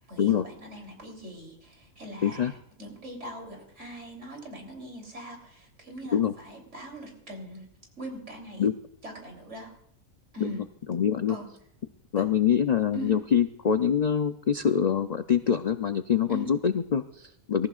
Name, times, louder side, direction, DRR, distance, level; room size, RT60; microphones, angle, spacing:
voice 1, 0.1-7.7 8.0-8.7 9.0-9.7 10.3-10.6 11.3-11.5 12.9-13.2 16.3-16.5, right 1 dB, 55° right, 2 dB, 3.9 m, -41 dB
voice 2, 2.2-2.5 6.1-6.3 8.6-8.7 10.4-10.5 10.9-11.4 12.1-17.7, left 8 dB, 65° left, 9 dB, 0.4 m, -25 dB
26.0 x 15.0 x 2.4 m, 0.73 s
omnidirectional pair, 1.4 m